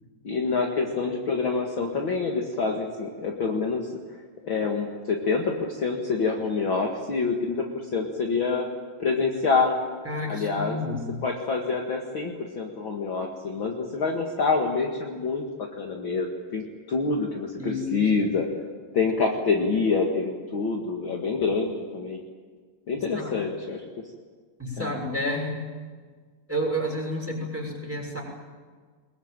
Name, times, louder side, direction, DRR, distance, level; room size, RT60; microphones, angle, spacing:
voice 1, 0.2-3.9 4.4-7.7 7.9-8.7 9.0-9.8 10.3-10.8 11.2-18.5 18.9-22.2 22.9-23.8 24.8-25.0, left 4 dB, 45° left, 0 dB, 1.6 m, -26 dB
voice 2, 10.0-11.2 17.6-18.1 23.1-23.3 24.6-25.6 26.5-28.2, left 1 dB, 5° right, -1 dB, 5.9 m, -30 dB
22.0 x 22.0 x 9.1 m, 1.6 s
omnidirectional pair, 4.9 m